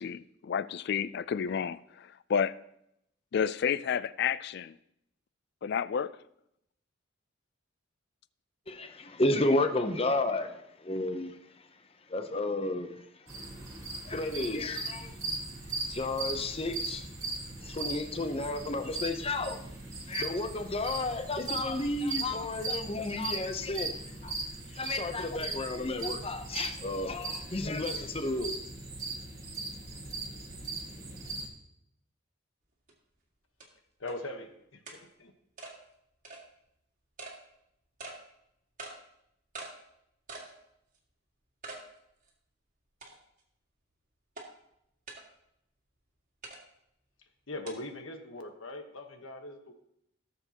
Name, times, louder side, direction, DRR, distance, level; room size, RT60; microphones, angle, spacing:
voice 1, 0.0-2.5 3.3-4.8 5.6-6.1, left 7 dB, 55° left, 0.3 m, -31 dB
voice 2, 8.7-11.4 12.1-13.0 14.0-15.2 15.9-17.1 17.6-19.6 20.1-24.3 24.7-28.6, left 2 dB, 30° left, 0.7 m, -32 dB
sound 1, 13.3-31.5, right 3 dB, 15° right, 1.6 m, -39 dB
sound 2, 32.9-33.0 33.6-33.7 34.1-34.2 34.9-35.0 35.6-35.7 36.2-36.4 37.2-37.4 38.0-38.2 38.8-39.0 39.5-39.7 40.3-40.5 40.9-41.0 41.6-41.8 42.3-42.4 43.0-43.4 44.4-44.5 45.1-45.2 46.4-46.6 47.7-47.8, right 3 dB, 40° right, 1.9 m, -43 dB
voice 3, 34.0-35.3 47.5-49.7, left 2 dB, 75° left, 1.2 m, -41 dB
17.5 x 7.0 x 2.9 m
head